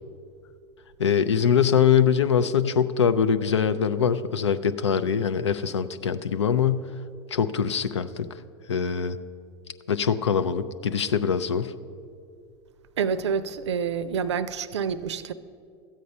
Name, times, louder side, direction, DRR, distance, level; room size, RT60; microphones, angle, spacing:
voice 1, 1.0-6.9 7.3-8.3 8.7-9.2 9.9-11.7, left 7 dB, 85° left, 0.5 m, -23 dB
voice 2, 13.0-15.3, right 6 dB, 80° right, 0.5 m, -27 dB
13.0 x 8.4 x 5.3 m
hypercardioid pair, 85°, 14 cm